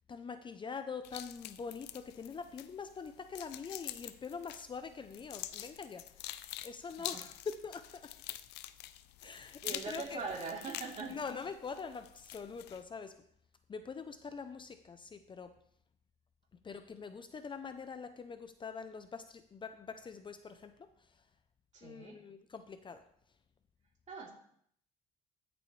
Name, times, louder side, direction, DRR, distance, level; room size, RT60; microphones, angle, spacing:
voice 1, 0.1-8.2 9.2-10.2 11.1-13.2 13.7-15.6 16.6-21.3 21.8-23.1, left 5 dB, 30° left, 10 dB, 0.6 m, -44 dB
sound 1, 1.0-12.8, left 14 dB, 85° left, 0.5 m, -47 dB
voice 2, 9.6-11.2 21.7-22.2 24.1-24.3, right 4 dB, 45° right, -2 dB, 3.3 m, -41 dB
14.0 x 6.9 x 3.2 m, 0.67 s
cardioid pair, 110°, 17 cm